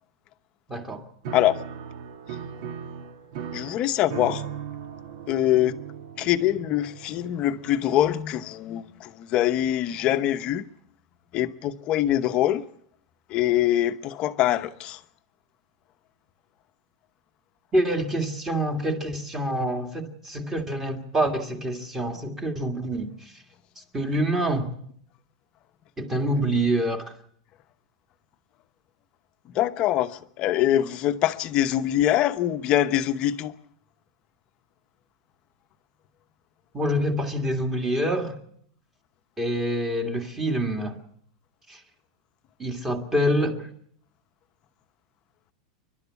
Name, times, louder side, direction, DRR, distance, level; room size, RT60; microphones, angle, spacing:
voice 1, 0.7-1.1 17.7-23.1 23.9-24.7 26.0-27.1 36.7-38.4 39.4-41.0 41.7-41.8 42.6-43.7, right 1 dB, 10° right, 1.9 m, -26 dB
Piano, 1.2-8.0, right 8 dB, 50° right, 1.4 m, -38 dB
voice 2, 3.5-4.4 5.3-5.7 6.2-10.6 11.3-12.6 13.3-15.0 29.5-33.5, left 12 dB, 30° left, 0.9 m, -24 dB
29.0 x 12.0 x 8.4 m
supercardioid pair, 170°, 3 cm